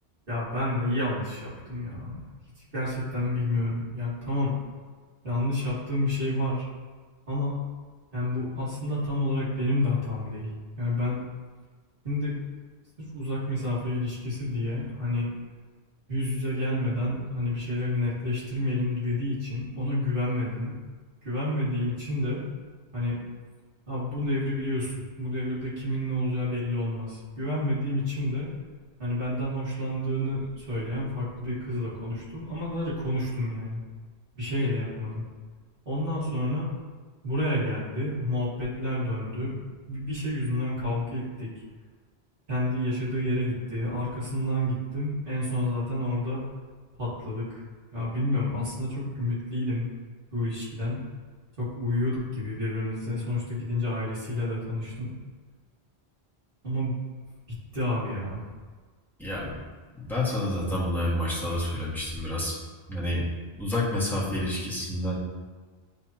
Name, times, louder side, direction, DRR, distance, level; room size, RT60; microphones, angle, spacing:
voice 1, 0.3-2.2 2.7-4.5 5.2-6.7 7.3-7.6 8.1-10.5 10.8-11.2 12.0-12.3 13.1-15.3 16.1-20.7 21.2-22.4 22.9-23.2 23.9-28.5 29.0-33.8 34.3-35.2 35.9-36.7 37.2-39.6 39.9-41.5 42.5-46.4 47.0-47.6 47.9-49.8 50.3-51.0 51.6-55.1 56.6-56.9 57.7-58.4, left 1 dB, 55° right, -10 dB, 2.2 m, -29 dB
voice 2, 59.2-59.6 60.0-62.6 62.9-63.3 63.6-65.2, left 1 dB, ahead, -7 dB, 1.6 m, -29 dB
10.0 x 3.4 x 2.9 m, 1.4 s
omnidirectional pair, 1.1 m